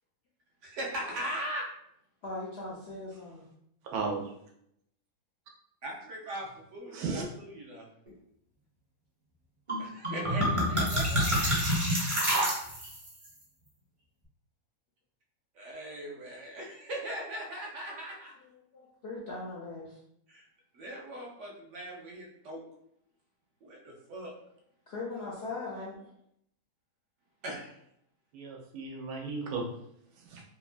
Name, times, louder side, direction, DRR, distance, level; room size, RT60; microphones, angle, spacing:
voice 1, 0.6-1.7 5.8-6.5 6.7-7.9 9.8-11.7 15.6-18.3 20.3-20.4 20.7-22.6 23.6-24.3 27.4-27.7, right 1 dB, 65° right, -1 dB, 0.8 m, -39 dB
voice 2, 2.2-3.4 18.4-20.0 24.9-26.1, left 3 dB, 70° left, -4 dB, 0.6 m, -40 dB
voice 3, 3.9-4.2 6.9-7.3 28.3-29.6 30.3-30.4, right 4 dB, 80° right, 1 dB, 1.1 m, -34 dB
sound 1, 9.7-9.8 10.0-13.1, equal, 30° right, 0.7 m, -27 dB
2.9 x 2.2 x 2.4 m, 0.73 s
omnidirectional pair, 1.6 m